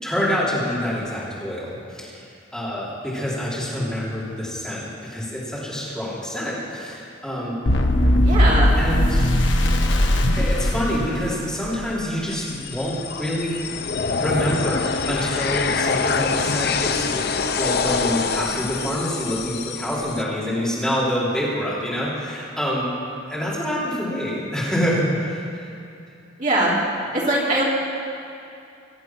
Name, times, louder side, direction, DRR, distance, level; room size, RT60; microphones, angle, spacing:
voice 1, 0.0-7.5 8.8-9.2 10.3-13.6 14.2-22.9 23.3-25.7, equal, 5° left, -8 dB, 3.5 m, -26 dB
sound 1, 7.7-11.8, left 1 dB, 75° left, 1.1 m, -19 dB
voice 2, 8.2-8.7 18.8-18.9 26.4-26.7 27.1-27.6, right 1 dB, 40° right, -5 dB, 3.5 m, -21 dB
sound 2, 12.3-20.2, left 5 dB, 55° left, 0.6 m, -25 dB
23.5 x 7.9 x 6.0 m, 2.6 s
head